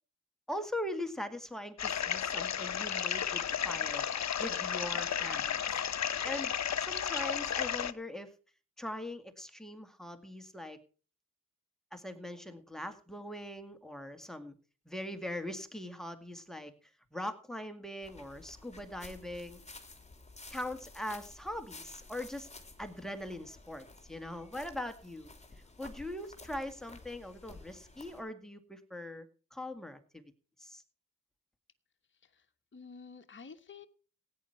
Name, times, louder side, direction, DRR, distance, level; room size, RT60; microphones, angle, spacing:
voice 1, 0.5-4.1 4.4-5.8 6.2-6.5 6.8-8.3 8.8-10.8 11.9-14.6 14.9-16.7 17.1-19.6 20.5-22.5 22.8-25.3 25.8-30.2 30.6-30.8, left 1 dB, ahead, 7 dB, 2.1 m, -41 dB
sound 1, 1.8-7.9, left 8 dB, 55° left, 0.8 m, -33 dB
sound 2, 18.0-28.2, left 3 dB, 20° left, 2.8 m, -53 dB
voice 2, 32.1-32.5 32.7-33.9, left 5 dB, 35° left, 6 dB, 1.3 m, -50 dB
16.5 x 9.6 x 4.6 m, 0.36 s
cardioid pair, 75°, 33 cm